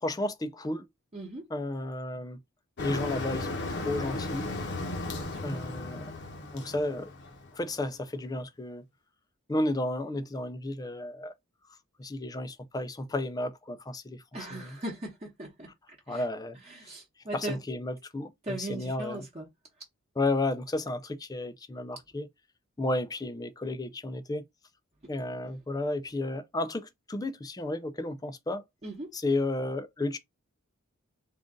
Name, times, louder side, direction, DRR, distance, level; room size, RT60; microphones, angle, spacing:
voice 1, 0.0-0.8 1.5-2.4 2.8-4.5 5.4-6.2 6.5-7.1 7.5-8.8 9.5-11.3 12.0-14.2 14.5-14.8 16.1-16.6 17.3-19.2 20.2-22.3 22.8-24.4 25.1-28.6 29.1-30.2, left 2 dB, 15° left, 0.4 m, -32 dB
voice 2, 1.1-1.4 5.1-5.8 14.3-15.7 16.1-16.2 16.6-17.6 18.4-19.5 28.8-29.1, right 1 dB, 30° right, 1.0 m, -39 dB
Motor vehicle (road), 2.8-7.7, left 2 dB, 55° left, 0.9 m, -35 dB
3.8 x 2.4 x 3.7 m
head